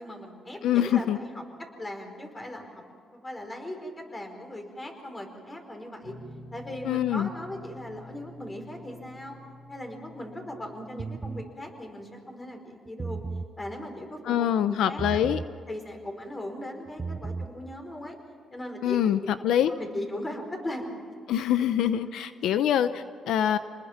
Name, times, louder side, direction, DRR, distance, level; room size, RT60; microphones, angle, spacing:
voice 1, 0.0-2.8 3.1-6.1 6.5-9.4 9.7-13.2 13.6-15.2 15.7-18.2 18.5-19.0 19.7-21.0 21.8-21.9, left 1 dB, 20° left, 3 dB, 4.9 m, -38 dB
voice 2, 0.6-1.2 6.8-7.3 14.2-15.4 18.8-19.7 21.3-23.6, left 10 dB, 80° left, 12 dB, 0.7 m, -25 dB
sound 1, 6.0-11.6, left 1 dB, 75° right, 2.8 m, -48 dB
sound 2, 11.0-11.5 12.9-13.5 15.0-15.5 16.9-17.5, right 4 dB, 30° right, 0.8 m, -34 dB
28.0 x 20.5 x 5.9 m, 2.2 s
cardioid pair, 90°, 0 cm